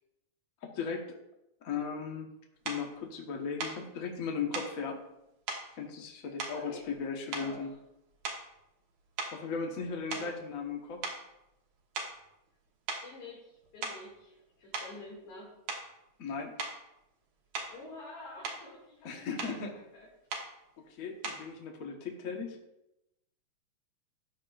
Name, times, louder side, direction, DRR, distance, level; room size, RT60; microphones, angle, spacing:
voice 1, 0.6-1.2 1.6-2.3 2.6-5.0 5.8-7.7 9.3-11.1 16.2-16.5 19.0-19.8 21.0-22.6, left 5 dB, 55° left, 2 dB, 0.9 m, -37 dB
sound 1, 2.7-2.9 3.6-3.8 4.5-4.8 5.5-5.7 6.4-7.0 7.3-7.7 8.2-8.6 9.2-10.7 11.0-11.3 12.0-12.2 12.9-13.1 13.6-14.1 14.7-15.0 15.7-15.9 16.6-16.8 17.5-17.8 18.2-18.7 19.4-19.6 20.3-20.5 21.2-21.5, right 4 dB, 65° right, 2.5 m, -39 dB
voice 2, 7.2-7.8 10.1-10.3 13.0-15.5 17.7-20.1 20.8-20.9, left 2 dB, 75° left, -6 dB, 3.7 m, -49 dB
13.5 x 9.1 x 2.5 m, 0.88 s
omnidirectional pair, 3.4 m